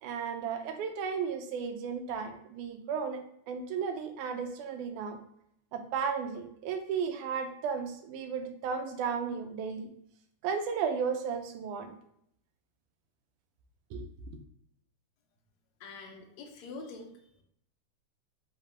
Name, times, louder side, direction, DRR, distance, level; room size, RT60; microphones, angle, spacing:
voice 1, 0.0-3.2 3.5-5.2 5.7-9.9 10.4-11.9 13.9-14.1, right 6 dB, 90° right, 6 dB, 2.1 m, -34 dB
voice 2, 15.8-17.1, left 3 dB, 75° left, 2 dB, 1.9 m, -45 dB
6.6 x 2.9 x 2.8 m, 0.71 s
omnidirectional pair, 3.5 m